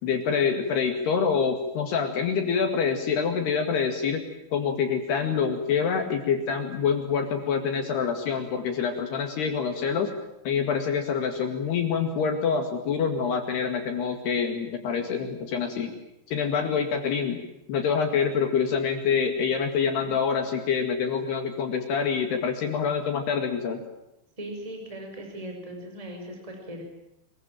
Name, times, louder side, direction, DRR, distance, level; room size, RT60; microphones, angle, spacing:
voice 1, 0.0-4.2 4.5-10.1 10.5-15.9 16.3-17.4 17.7-23.8, left 6 dB, 60° left, 5 dB, 3.7 m, -26 dB
voice 2, 24.4-26.8, right 1 dB, 5° right, 2 dB, 5.4 m, -39 dB
24.5 x 22.5 x 9.1 m, 0.86 s
omnidirectional pair, 6.0 m